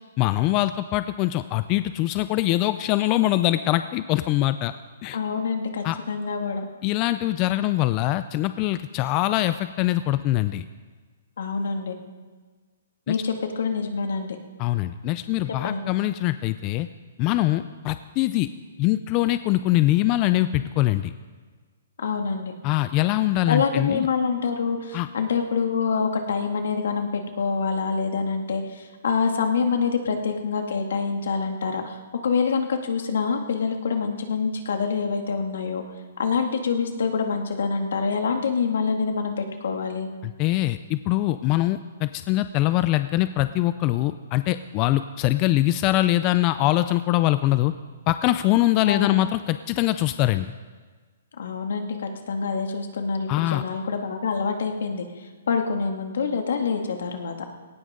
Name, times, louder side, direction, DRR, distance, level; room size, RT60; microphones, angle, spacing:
voice 1, 0.2-4.7 5.0-5.2 5.8-6.0 6.8-10.6 13.1-13.2 14.6-16.9 17.2-18.5 18.8-21.1 22.6-24.1 24.9-25.1 40.2-47.7 48.1-50.5 53.3-53.6, left 15 dB, 25° left, 12 dB, 0.3 m, -23 dB
voice 2, 5.1-6.6 11.4-11.9 13.1-14.4 15.6-15.8 22.0-22.5 23.5-32.0 32.2-35.8 36.2-40.1 48.8-49.2 51.4-57.3, left 5 dB, 75° left, 4 dB, 2.2 m, -26 dB
19.0 x 17.5 x 3.8 m, 1.4 s
hypercardioid pair, 170°, 0 cm